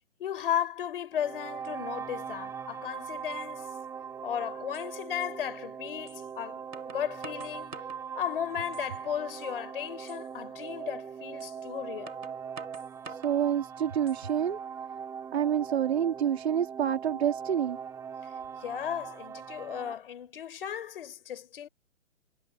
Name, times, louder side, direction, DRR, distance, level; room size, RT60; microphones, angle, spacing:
voice 1, 0.2-3.7 4.2-7.8 8.2-12.2 18.6-21.7, left 10 dB, 40° left, 4.9 m, -35 dB
sound 1, 1.1-19.9, right 7 dB, 5° right, 4.9 m, -41 dB
sound 2, 4.1-4.2 4.7-4.9 6.1-6.2 6.7-8.0 8.6-9.1 9.5-9.6 10.1-10.2 11.4-11.5 12.1-13.4 13.9-14.4, right 4 dB, 90° right, 6.0 m, -46 dB
voice 2, 13.1-14.6 15.3-17.8, right 9 dB, 50° right, 2.4 m, -28 dB
hypercardioid pair, 165°, 40 cm